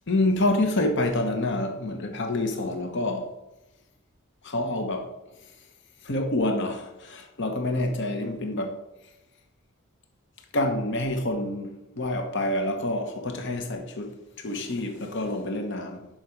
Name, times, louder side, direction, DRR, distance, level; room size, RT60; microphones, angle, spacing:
voice 1, 0.1-3.3 4.4-5.1 6.0-8.8 10.5-16.1, left 1 dB, 60° left, 1.0 m, -27 dB
7.5 x 5.9 x 5.1 m
head